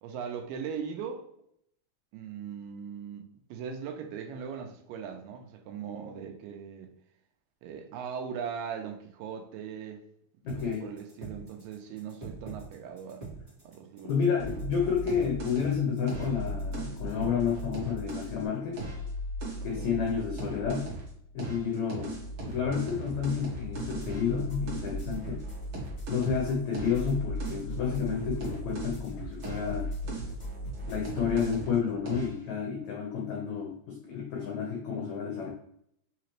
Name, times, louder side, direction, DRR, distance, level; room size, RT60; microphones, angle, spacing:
voice 1, 0.0-1.2 2.1-6.9 7.6-10.0 10.5-13.3 13.6-14.1 19.7-19.9, right 7 dB, 80° right, 3 dB, 2.2 m, -39 dB
voice 2, 10.4-10.9 14.1-18.8 19.6-20.9 21.3-22.1 22.4-25.4 26.1-29.9 30.9-35.5, left 6 dB, 80° left, -1 dB, 1.6 m, -30 dB
sound 1, 10.5-18.5, right 3 dB, 30° right, 0.7 m, -44 dB
sound 2, 14.4-18.4 18.7-21.1 21.4-29.1 29.4-31.8 32.1-32.4, right 1 dB, 60° right, 1.6 m, -37 dB
sound 3, 23.8-31.6, right 2 dB, 45° left, 0.9 m, -42 dB
5.7 x 2.9 x 3.1 m, 0.70 s
omnidirectional pair, 4.3 m